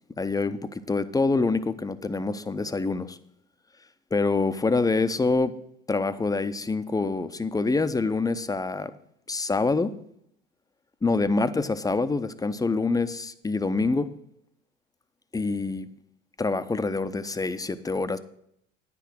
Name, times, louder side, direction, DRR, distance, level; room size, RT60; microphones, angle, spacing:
voice 1, 0.2-3.2 4.1-5.5 5.9-8.9 9.3-9.9 11.0-14.1 15.3-15.9 16.4-18.2, left 3 dB, 10° left, 12 dB, 0.6 m, -26 dB
9.9 x 6.1 x 6.1 m, 0.70 s
figure-of-eight pair, 70°, 38 cm